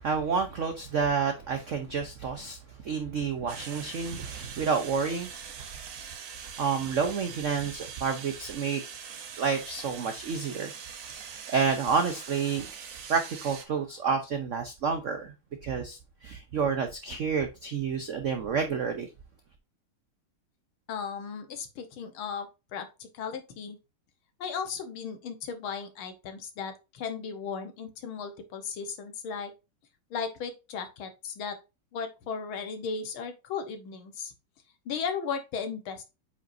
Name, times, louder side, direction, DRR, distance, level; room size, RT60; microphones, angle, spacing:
voice 1, 0.0-2.6 2.8-5.3 6.6-8.8 9.4-10.7 11.1-12.7 13.1-15.3 15.6-19.1, right 5 dB, 75° right, 0.7 m, -29 dB
sound 1, 3.5-13.6, right 7 dB, 55° right, 1.2 m, -43 dB
voice 2, 20.9-22.5 22.7-22.9 23.1-23.8 24.4-29.5 30.1-31.6 31.9-34.3 34.9-36.0, left 6 dB, 75° left, 1.9 m, -36 dB
8.4 x 5.2 x 2.6 m
omnidirectional pair, 2.3 m